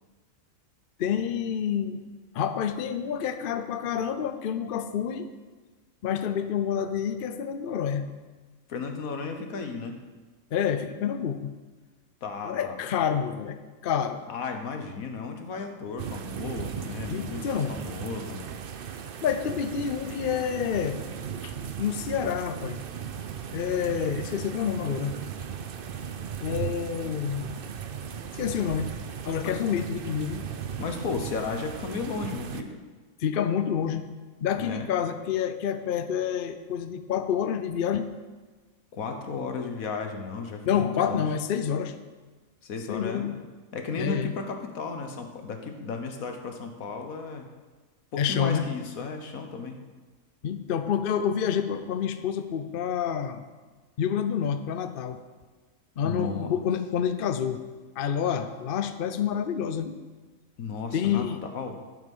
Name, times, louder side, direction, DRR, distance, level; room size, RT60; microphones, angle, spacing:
voice 1, 1.0-2.0 2.3-5.3 6.0-8.1 10.5-11.5 12.4-13.6 13.8-14.2 17.1-17.7 19.2-21.0 21.4-22.8 23.5-25.2 26.4-27.5 28.3-28.9 29.2-30.5 33.2-34.1 34.4-38.1 40.6-41.9 42.9-43.4 44.0-44.4 48.2-48.7 50.4-53.4 54.0-55.2 56.0-57.6 58.0-60.0 60.9-61.4, left 8 dB, 55° left, 9 dB, 0.7 m, -28 dB
voice 2, 8.7-10.0 12.2-12.8 14.3-18.4 29.4-29.6 30.8-32.8 34.6-34.9 38.9-41.3 42.6-43.2 43.7-47.4 48.1-49.8 56.0-56.6 60.6-61.8, left 4 dB, 85° left, 5 dB, 1.6 m, -34 dB
sound 1, 16.0-32.6, right 7 dB, 55° right, 0.7 m, -37 dB
11.5 x 7.3 x 5.4 m, 1.3 s
omnidirectional pair, 1.4 m